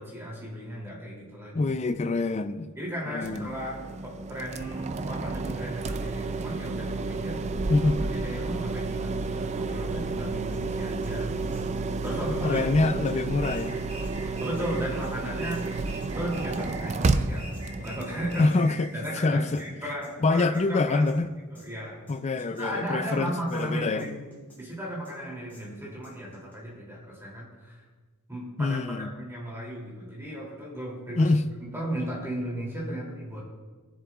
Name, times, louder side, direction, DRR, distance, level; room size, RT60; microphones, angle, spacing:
voice 1, 0.0-1.7 2.8-7.4 8.2-11.7 12.0-12.9 14.4-15.6 16.1-18.5 18.9-21.0 21.5-22.0 22.3-24.1 24.6-27.8 28.3-31.3 31.7-33.4, equal, 10° right, 2.7 m, -35 dB
voice 2, 1.5-2.7 3.1-3.5 7.7-8.0 12.3-13.8 18.4-18.9 19.2-19.6 20.2-21.3 22.1-24.1 28.6-29.1 31.2-31.4, left 3 dB, 30° left, 0.4 m, -25 dB
sound 1, 3.2-18.4, right 3 dB, 30° right, 0.4 m, -31 dB
sound 2, 10.5-10.6 11.0-11.1 11.5-11.6 12.0-12.7 13.1-13.2 13.5-13.7 14.0-14.6 15.0-15.1 15.5-15.6 16.0-16.7 17.0-17.1 17.5-17.6 18.0-18.6 19.0-19.1 19.5-19.6 20.0-20.1 20.4-20.7 21.1-21.2 21.6-21.7 22.1-22.7 23.1-23.2 23.5-23.7 24.0-24.6 25.0-25.1 25.5-25.6 26.0-26.5, left 1 dB, 10° left, 3.4 m, -53 dB
sound 3, 13.4-14.9 15.4-16.9 17.4-19.0, right 1 dB, 90° right, 1.9 m, -44 dB
18.5 x 7.4 x 2.4 m
head